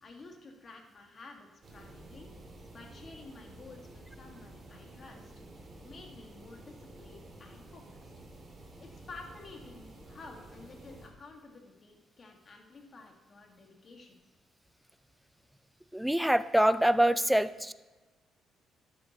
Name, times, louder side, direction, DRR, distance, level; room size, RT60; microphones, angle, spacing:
voice 1, 0.0-2.3 2.7-5.3 5.8-8.1 8.8-14.2, left 3 dB, 45° left, 2 dB, 1.8 m, -51 dB
sound 1, 1.6-11.1, right 1 dB, 40° right, 2.5 m, -51 dB
voice 2, 15.9-17.7, right 1 dB, 5° right, 15 dB, 0.4 m, -25 dB
11.5 x 8.4 x 3.0 m, 1.3 s
cardioid pair, 90°, 0 cm